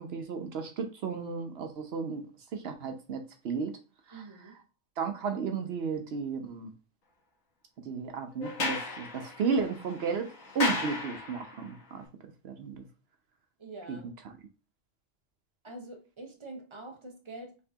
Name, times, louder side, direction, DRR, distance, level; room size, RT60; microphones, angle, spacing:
voice 1, 0.0-2.3 2.5-3.8 5.0-6.7 7.8-12.0 12.4-12.8 13.9-14.0, right 5 dB, 60° right, 0.7 m, -33 dB
voice 2, 4.1-4.5 13.6-14.1 15.6-17.6, right 2 dB, 25° right, 0.7 m, -45 dB
Sliding door, 8.4-11.7, left 3 dB, 80° left, 1.4 m, -35 dB
4.4 x 3.4 x 2.8 m
omnidirectional pair, 1.4 m